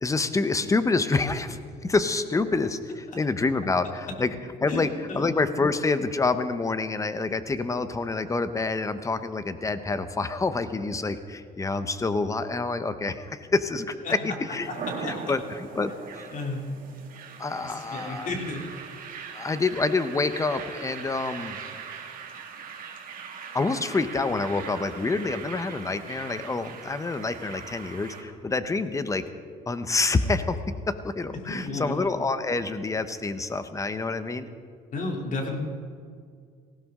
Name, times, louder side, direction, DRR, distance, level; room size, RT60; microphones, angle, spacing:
voice 1, 0.0-4.3 4.6-14.7 15.0-15.9 17.4-18.3 19.3-21.6 23.5-29.3 29.7-30.6 30.9-34.5, left 3 dB, 20° left, 11 dB, 0.9 m, -27 dB
sound 1, 14.6-28.2, right 6 dB, 55° right, 2.1 m, -40 dB
voice 2, 15.0-15.3 16.3-16.6 17.6-18.6 31.5-31.9 34.9-35.6, left 3 dB, 50° left, 1 dB, 3.0 m, -32 dB
18.5 x 16.0 x 3.7 m, 2.1 s
cardioid pair, 110°, 17 cm